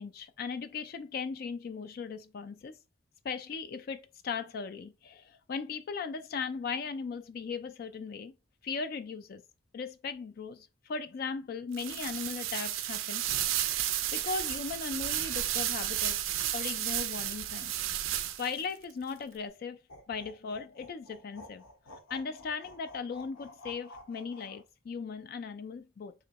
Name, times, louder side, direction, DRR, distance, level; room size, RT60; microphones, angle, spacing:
voice 1, 0.0-2.8 3.2-8.3 8.6-9.4 9.7-13.5 14.1-17.7 18.4-19.8 20.1-21.6 22.1-26.1, left 5 dB, 50° left, 0.3 m, -38 dB
sound 1, 11.7-18.6, right 12 dB, 80° right, 0.4 m, -32 dB
sound 2, 19.9-24.6, left 1 dB, 85° left, 0.8 m, -52 dB
3.1 x 2.7 x 4.0 m
head